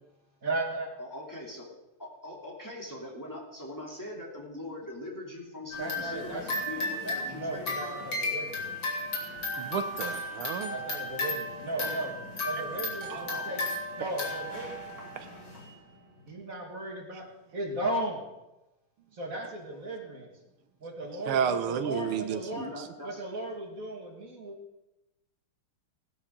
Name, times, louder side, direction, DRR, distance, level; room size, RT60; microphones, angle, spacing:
voice 1, 0.4-0.9 5.8-6.4 7.2-8.7 10.7-12.1 12.4-13.6 14.0-14.8 16.3-17.3 17.5-18.2 19.1-20.3 20.8-22.7 23.0-24.6, right 1 dB, 40° right, 1 dB, 2.2 m, -36 dB
voice 2, 1.0-1.7 2.0-8.0 11.8-12.1 13.1-13.5 22.4-23.2, left 1 dB, 10° left, -4 dB, 2.8 m, -42 dB
sound 1, 5.7-15.7, left 2 dB, 60° left, 3.3 m, -35 dB
voice 3, 9.6-10.8 13.1-13.2 21.3-22.6, right 7 dB, 90° right, 9 dB, 1.8 m, -31 dB
17.5 x 11.0 x 3.8 m, 0.97 s
omnidirectional pair, 2.3 m